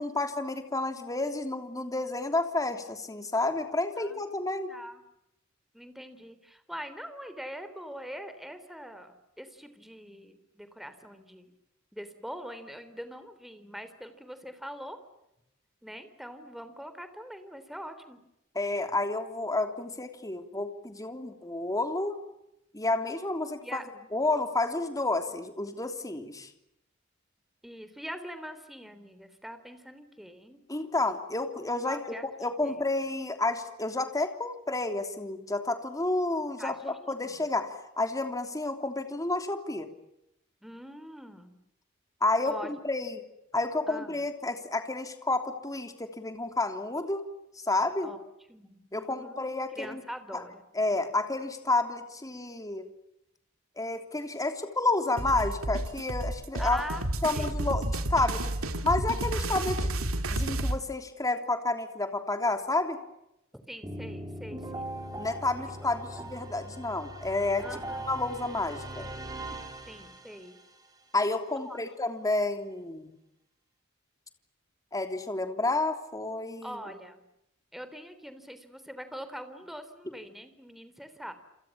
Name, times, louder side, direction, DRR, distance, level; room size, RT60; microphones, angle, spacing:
voice 1, 0.0-4.7 18.5-22.2 22.7-23.8 24.1-26.5 30.7-32.0 32.4-39.9 42.2-43.2 43.5-47.2 47.7-48.1 48.9-50.0 50.3-50.4 50.7-52.9 53.8-56.8 57.2-58.5 58.8-63.0 65.2-67.6 68.1-69.1 71.1-73.1 74.9-76.8, left 2 dB, 15° left, 6 dB, 3.2 m, -30 dB
voice 2, 4.7-5.0 5.7-11.6 11.9-15.0 15.8-18.2 23.6-23.8 25.3-25.4 27.6-30.6 31.8-32.8 36.6-37.5 40.6-41.6 42.4-42.7 43.9-44.2 48.0-49.4 49.7-50.6 56.6-57.0 57.3-57.9 63.5-64.8 67.6-68.2 69.9-70.6 71.6-71.8 76.6-77.2 77.7-81.3, equal, ahead, 10 dB, 3.5 m, -43 dB
sound 1, 55.2-60.8, right 1 dB, 85° right, 2.5 m, -31 dB
sound 2, 63.8-70.6, right 1 dB, 20° right, 5.5 m, -40 dB
29.0 x 27.5 x 7.4 m, 0.86 s
head